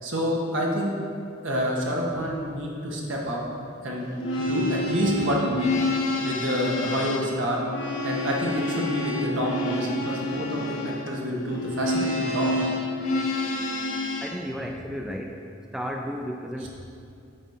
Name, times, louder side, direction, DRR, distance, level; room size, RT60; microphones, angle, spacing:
voice 1, 0.0-0.9 1.4-3.4 3.8-5.7 6.2-7.6 8.0-12.5 16.6-16.7, equal, 65° right, -2 dB, 1.5 m, -28 dB
sound 1, 4.1-14.3, left 2 dB, 65° left, 1.1 m, -28 dB
voice 2, 14.2-15.4 15.7-16.7, equal, ahead, 1 dB, 0.3 m, -33 dB
9.1 x 4.1 x 6.4 m, 2.5 s
head